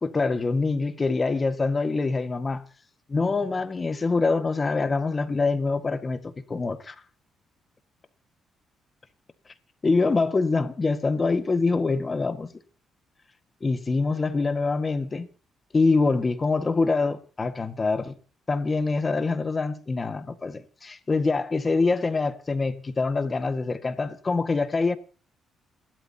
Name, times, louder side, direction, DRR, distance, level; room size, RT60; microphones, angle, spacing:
voice 1, 0.0-2.6 3.1-6.9 9.8-12.5 13.6-15.3 15.7-18.1 18.5-25.0, left 3 dB, 30° left, 1.7 m, -25 dB
28.5 x 12.5 x 2.8 m
cardioid pair, 90°, 0 cm